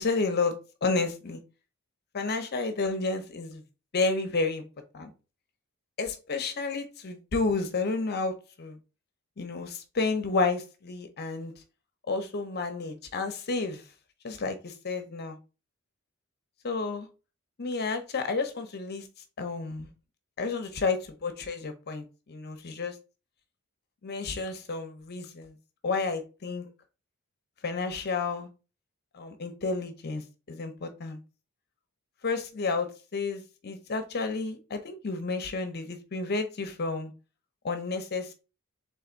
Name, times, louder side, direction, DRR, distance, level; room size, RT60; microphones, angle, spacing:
voice 1, 0.0-1.4 2.1-3.6 3.9-4.6 4.9-5.1 6.0-8.8 9.4-11.5 12.1-13.8 14.2-15.4 16.6-17.1 17.6-19.1 19.4-19.9 20.4-23.0 24.0-25.5 25.8-26.7 27.6-28.5 29.1-31.2 32.2-37.1 37.6-38.3, left 3 dB, 50° left, 0.7 m, -31 dB
3.8 x 3.4 x 3.9 m
head